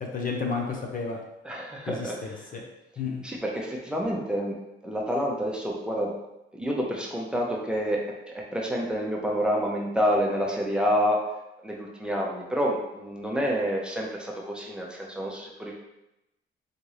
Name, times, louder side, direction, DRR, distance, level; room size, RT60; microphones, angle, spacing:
voice 1, 0.1-1.2 1.9-2.6 3.0-3.2, left 4 dB, 45° left, 0 dB, 0.8 m, -31 dB
voice 2, 1.4-2.5 3.2-4.6 4.8-6.2 6.5-11.3 11.6-15.7, equal, 5° right, -3 dB, 0.9 m, -28 dB
4.1 x 3.4 x 3.2 m, 0.91 s
cardioid pair, 90°, 20 cm